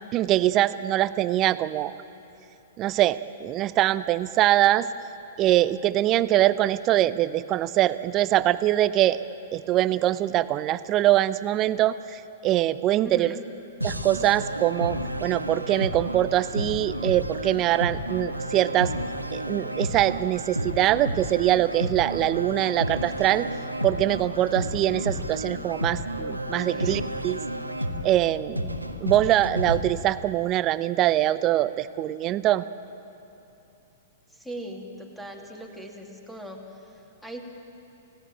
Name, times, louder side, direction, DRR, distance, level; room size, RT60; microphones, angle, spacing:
voice 1, 0.1-2.0 2.8-4.9 5.4-9.2 9.5-13.3 13.8-18.9 19.3-23.5 23.8-27.4 28.0-28.7 29.0-32.6, right 14 dB, 30° right, 15 dB, 0.7 m, -23 dB
voice 2, 13.0-13.5 26.7-27.1 34.3-37.5, equal, ahead, 2 dB, 2.7 m, -40 dB
sound 1, 13.8-29.8, right 1 dB, 90° right, 1.4 m, -31 dB
28.5 x 17.0 x 9.1 m, 2.8 s
figure-of-eight pair, 105°, 0 cm